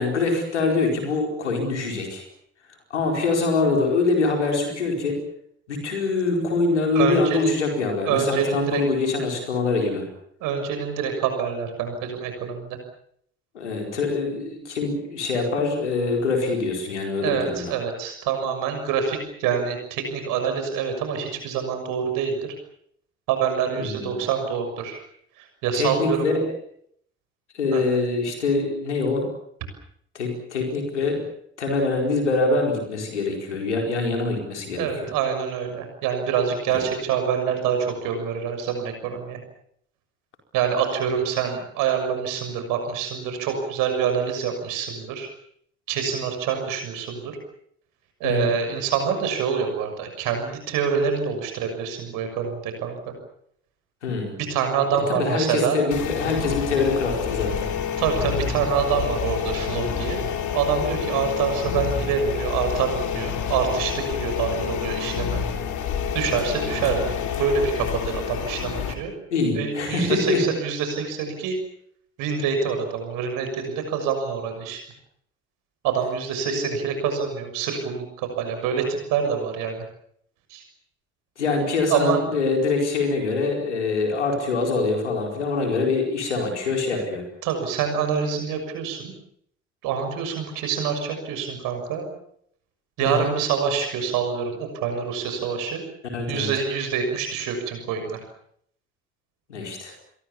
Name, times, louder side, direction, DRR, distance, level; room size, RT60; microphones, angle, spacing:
voice 1, 0.0-2.2 2.9-5.2 5.7-10.1 13.5-17.7 23.8-24.1 25.7-26.4 27.5-29.3 30.1-31.2 31.6-35.1 36.7-36.8 48.2-48.5 54.0-54.3 55.1-57.7 69.3-70.4 76.5-76.6 81.4-87.2 93.0-93.3 96.1-96.5 99.5-99.9, left 3 dB, 85° left, 3 dB, 4.7 m, -24 dB
voice 2, 6.9-7.5 8.0-8.8 10.4-12.8 17.2-22.5 23.3-25.0 25.4-26.3 27.7-27.8 34.7-39.4 40.5-45.3 45.9-47.4 48.2-53.1 54.4-55.8 58.0-60.2 60.5-65.4 66.1-69.1 69.5-71.6 72.2-74.8 75.8-79.8 80.5-80.6 81.9-82.2 87.4-89.1 89.8-92.1 93.0-95.8 96.3-98.2, right 7 dB, 65° right, 6 dB, 6.3 m, -26 dB
sound 1, 55.9-68.9, left 8 dB, 60° left, 3.2 m, -28 dB
27.5 x 23.0 x 7.2 m, 0.69 s
figure-of-eight pair, 40°, 34 cm